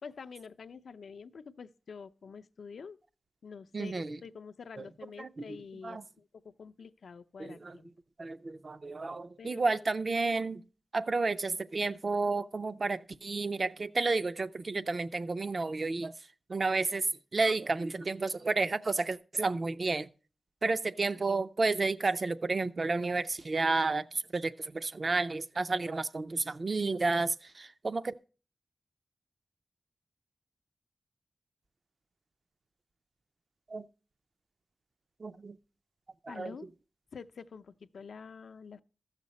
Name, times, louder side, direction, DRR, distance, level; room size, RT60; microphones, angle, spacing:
voice 1, 0.0-3.0 3.4-7.9 9.4-9.9 36.3-36.7 37.1-38.8, left 5 dB, 85° left, 0.4 m, -47 dB
voice 2, 3.7-4.2 4.8-4.9 5.2-5.3 5.8-6.0 7.4-7.8 8.2-10.6 10.9-16.1 16.5-17.1 17.3-20.1 20.6-28.1 33.7-33.9 35.2-35.6 36.2-36.5, right 3 dB, 45° right, 0.4 m, -31 dB
14.5 x 6.6 x 4.0 m
wide cardioid pair, 115°, 0 cm